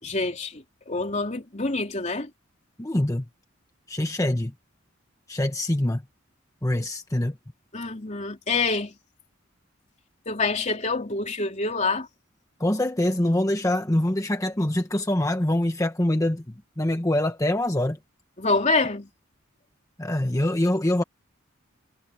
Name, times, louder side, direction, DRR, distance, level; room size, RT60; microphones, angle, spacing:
voice 1, 0.0-2.3 7.7-8.9 10.3-12.1 18.4-19.1, left 3 dB, 35° left, 3.2 m, -26 dB
voice 2, 2.8-3.3 3.9-4.5 5.3-6.0 6.6-7.4 12.6-18.0 20.0-21.0, left 1 dB, 15° left, 1.1 m, -24 dB
head